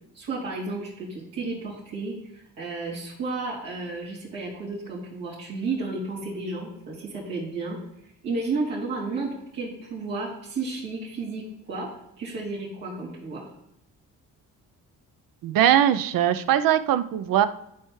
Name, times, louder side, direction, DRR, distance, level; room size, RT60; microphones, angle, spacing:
voice 1, 0.1-7.8 8.0-11.9 12.2-13.5, right 3 dB, 90° right, -8 dB, 3.0 m, -32 dB
voice 2, 15.4-17.5, right 10 dB, 75° right, 12 dB, 0.6 m, -21 dB
10.5 x 4.4 x 3.1 m, 0.80 s
cardioid pair, 75°, 34 cm